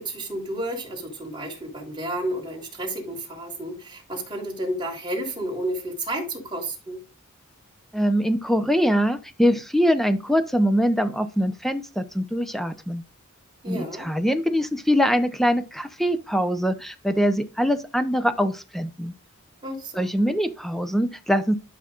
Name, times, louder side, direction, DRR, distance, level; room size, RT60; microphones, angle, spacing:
voice 1, 0.0-7.0 13.6-14.1 19.6-20.3, right 1 dB, 20° right, 3.3 m, -31 dB
voice 2, 7.9-13.0 13.7-19.1 19.9-21.5, equal, ahead, 0.7 m, -23 dB
12.0 x 5.8 x 2.5 m
head